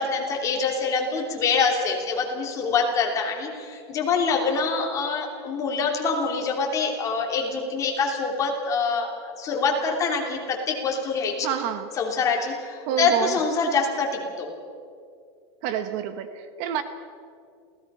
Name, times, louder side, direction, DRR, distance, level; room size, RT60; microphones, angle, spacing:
voice 1, 0.0-11.5 12.0-14.5, left 4 dB, 20° left, 0 dB, 3.0 m, -25 dB
voice 2, 11.4-11.9 12.9-13.4 15.6-16.8, right 9 dB, 45° right, 9 dB, 1.2 m, -28 dB
28.0 x 17.0 x 5.6 m, 2.2 s
supercardioid pair, 165°, 14 cm